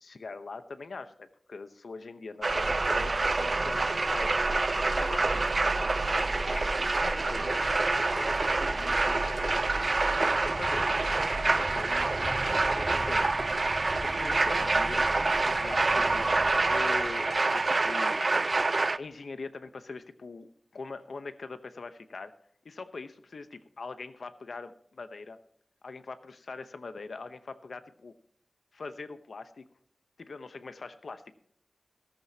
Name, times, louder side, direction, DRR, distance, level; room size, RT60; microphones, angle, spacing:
voice 1, 0.0-4.3 4.9-5.4 6.5-9.7 10.4-11.0 11.5-13.4 14.0-15.1 15.4-16.3 16.6-18.2 19.0-22.3 22.6-25.4 25.8-28.1 28.7-29.6 30.2-31.3, left 4 dB, 90° left, 10 dB, 0.8 m, -42 dB
sound 1, 2.4-19.0, right 3 dB, 50° right, 0.4 m, -27 dB
Wind, 2.5-17.8, right 1 dB, 65° right, 4.4 m, -40 dB
Thunder, 10.0-18.7, right 2 dB, 85° right, 3.1 m, -48 dB
14.5 x 13.5 x 2.8 m, 0.64 s
wide cardioid pair, 90°, 0 cm